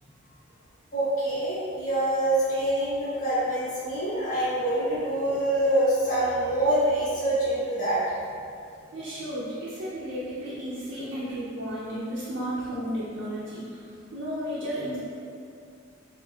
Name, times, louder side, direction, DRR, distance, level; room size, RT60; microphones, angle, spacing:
voice 1, 0.9-8.2, right 1 dB, 40° left, -12 dB, 1.2 m, -25 dB
voice 2, 8.9-15.0, equal, 70° right, -9 dB, 0.6 m, -33 dB
4.3 x 2.6 x 2.3 m, 2.4 s
head